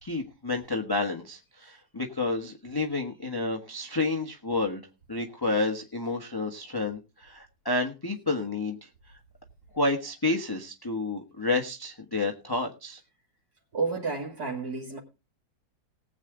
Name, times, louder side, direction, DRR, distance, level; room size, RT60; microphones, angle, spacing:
voice 1, 0.0-4.8 5.1-8.9 9.7-13.0, left 2 dB, 15° left, 1.1 m, -30 dB
voice 2, 13.7-15.0, right 4 dB, 55° right, 2.8 m, -31 dB
19.5 x 8.0 x 3.7 m
omnidirectional pair, 2.0 m